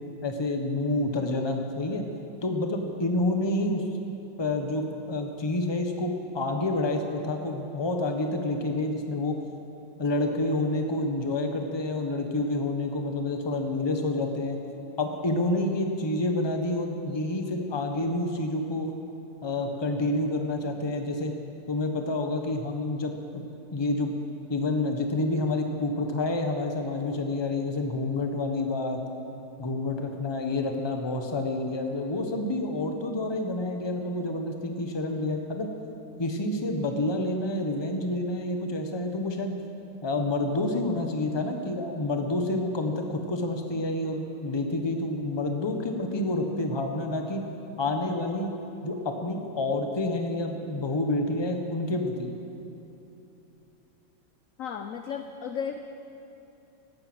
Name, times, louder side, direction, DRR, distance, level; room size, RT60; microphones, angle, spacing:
voice 1, 0.2-2.0 2.4-3.8 4.4-9.4 10.0-14.6 15.0-18.9 19.4-21.3 21.7-23.4 23.7-24.2 24.5-29.0 29.6-35.7 36.2-39.5 40.0-47.4 47.8-48.5 48.8-52.3, left 2 dB, 20° left, 4 dB, 0.9 m, -28 dB
voice 2, 54.6-55.8, left 7 dB, 65° left, 7 dB, 0.8 m, -34 dB
16.5 x 12.5 x 6.2 m, 2.9 s
omnidirectional pair, 2.0 m